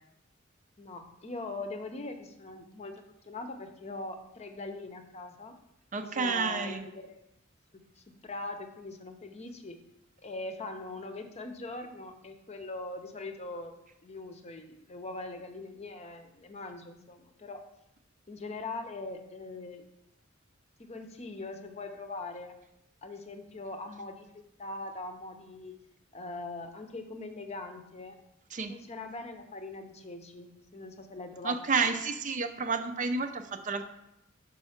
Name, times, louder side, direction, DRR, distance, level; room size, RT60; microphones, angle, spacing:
voice 1, 0.8-5.6 6.0-7.3 8.0-9.8 10.2-13.8 14.0-17.6 18.3-19.9 20.8-22.5 23.0-25.8 26.1-28.2 28.7-31.9, left 2 dB, 35° left, 6 dB, 0.7 m, -41 dB
voice 2, 5.9-6.8 28.5-28.7 31.4-33.8, right 4 dB, 40° right, 8 dB, 0.5 m, -30 dB
5.6 x 5.4 x 5.7 m, 0.85 s
head